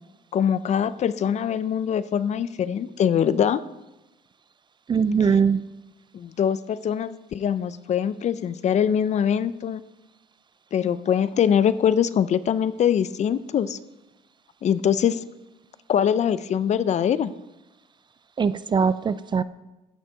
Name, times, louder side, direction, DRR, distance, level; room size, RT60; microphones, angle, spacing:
voice 1, 0.3-3.6 5.3-5.4 6.1-9.8 10.7-13.8 14.6-15.2 15.9-17.3, left 8 dB, 45° left, 16 dB, 0.5 m, -23 dB
voice 2, 4.9-5.6 18.4-19.4, right 6 dB, 25° right, 16 dB, 0.4 m, -21 dB
13.5 x 6.4 x 4.5 m, 1.0 s
cardioid pair, 110°, 17 cm